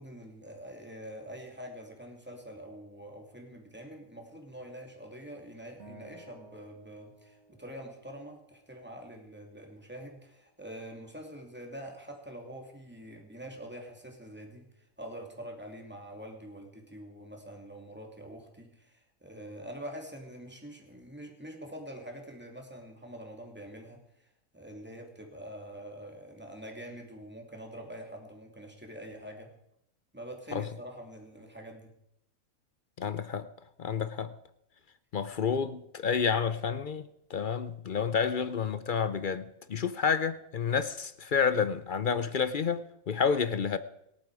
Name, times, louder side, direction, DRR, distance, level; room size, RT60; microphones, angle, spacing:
voice 1, 0.0-29.5 30.1-31.9, equal, 5° right, 2.6 m, -45 dB
Acoustic guitar, 5.8-9.0, right 2 dB, 50° right, 2.7 m, -55 dB
voice 2, 33.0-33.5 33.8-34.3 35.1-43.8, left 6 dB, 55° left, 0.6 m, -29 dB
26.5 x 8.8 x 4.8 m
omnidirectional pair, 1.5 m